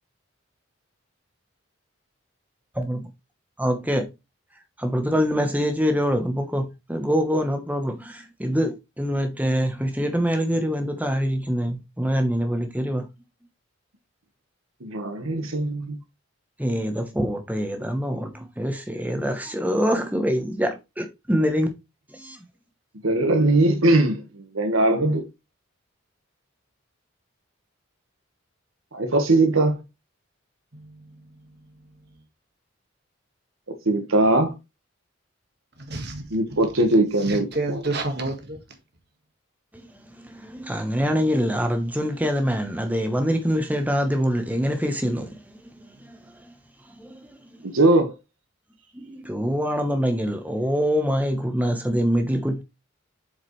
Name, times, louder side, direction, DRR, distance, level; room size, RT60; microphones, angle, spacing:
voice 1, 2.7-3.1 3.6-4.1 4.8-13.1 16.6-21.7 22.1-22.4 40.1-46.4 47.0-47.4 48.9-52.6, equal, 10° right, 1.0 m, -25 dB
voice 2, 14.8-16.0 23.0-25.2 28.9-29.8 33.8-34.5 36.3-37.8 47.6-48.1, right 2 dB, 85° right, 1.5 m, -20 dB
voice 3, 30.7-32.2 35.8-36.8 37.2-38.6, right 2 dB, 50° right, 1.6 m, -32 dB
7.6 x 4.9 x 3.2 m
head